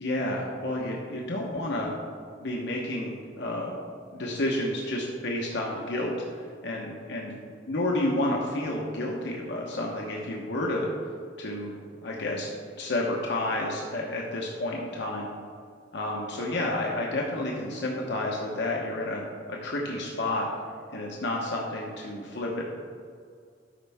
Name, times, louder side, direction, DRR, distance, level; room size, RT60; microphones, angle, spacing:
voice 1, 0.0-1.9 2.4-3.8 4.1-7.3 7.7-11.1 11.4-11.7 12.0-12.5 12.8-15.3 15.9-19.2 19.5-20.5 20.9-22.6, left 1 dB, 65° left, -2 dB, 0.9 m, -30 dB
12.5 x 5.5 x 3.5 m, 2.2 s
head